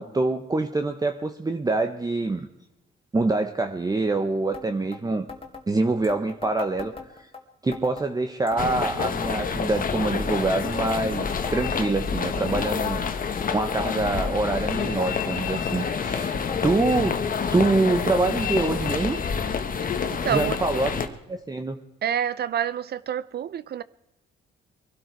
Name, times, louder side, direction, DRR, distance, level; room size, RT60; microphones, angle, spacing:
voice 1, 0.0-2.5 3.1-5.3 5.7-6.9 7.6-13.0 13.5-17.2 17.5-19.2 20.3-21.8, right 2 dB, 20° right, 0.9 m, -25 dB
sound 1, 4.5-4.7 4.9-5.0 5.3-5.6 6.0-7.4 7.7-8.1 8.5-9.8 10.1-10.5 10.9-12.3 12.6-12.9 13.3-14.7 15.0-15.4 15.7-16.2 16.5-16.6 16.9-17.0 17.7-17.8 18.6-18.7, left 4 dB, 30° left, 2.0 m, -39 dB
sound 2, 8.6-21.1, left 6 dB, 45° left, 1.3 m, -28 dB
voice 2, 20.1-20.6 22.0-23.8, right 9 dB, 55° right, 0.5 m, -27 dB
22.0 x 12.0 x 4.6 m
cardioid pair, 90°, 20 cm